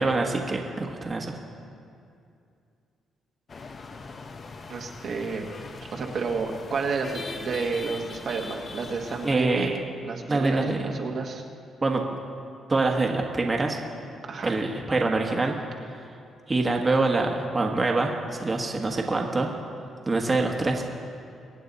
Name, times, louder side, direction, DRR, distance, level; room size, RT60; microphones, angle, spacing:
voice 1, 0.0-1.4 9.2-9.7 10.3-10.9 11.8-12.0 12.7-13.8 14.4-15.5 16.5-19.5 20.1-20.8, right 3 dB, 25° right, 1 dB, 1.4 m, -25 dB
sound 1, 3.5-9.4, left 4 dB, 40° left, 0.8 m, -41 dB
voice 2, 4.7-5.5 5.9-11.4 14.3-14.6, right 4 dB, 55° right, 1 dB, 1.4 m, -31 dB
24.0 x 8.6 x 4.1 m, 2.4 s
cardioid pair, 90°, 0 cm